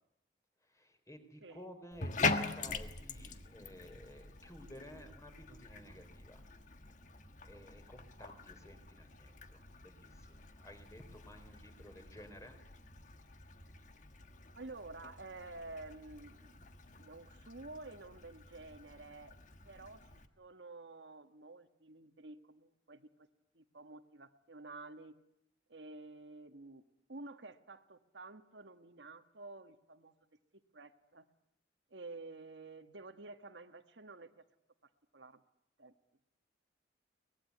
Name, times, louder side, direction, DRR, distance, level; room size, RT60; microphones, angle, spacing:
voice 1, 0.6-6.4 6.9-12.6, equal, 15° left, 6 dB, 4.1 m, -54 dB
Bathtub (filling or washing), 1.9-20.3, left 3 dB, 40° left, 1.5 m, -44 dB
voice 2, 14.5-16.6 17.0-19.4 19.6-20.0 20.4-23.3 23.5-25.2 25.7-26.8 27.1-30.1 30.7-31.3 31.9-34.3 35.1-35.4 35.8-35.9, right 2 dB, 70° right, 8 dB, 1.5 m, -50 dB
24.0 x 20.5 x 9.7 m, 0.83 s
head